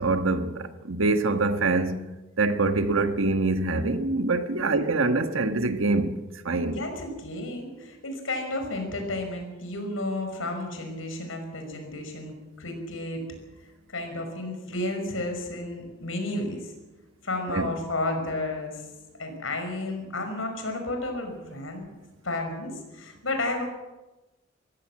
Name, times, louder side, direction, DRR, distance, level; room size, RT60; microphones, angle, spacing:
voice 1, 0.0-6.8 17.5-17.7, right 3 dB, 85° right, 1.4 m, -25 dB
voice 2, 6.7-13.2 13.9-16.7 17.2-18.8 19.2-21.8 22.2-23.6, left 2 dB, 90° left, 5.7 m, -32 dB
22.0 x 16.0 x 7.6 m
head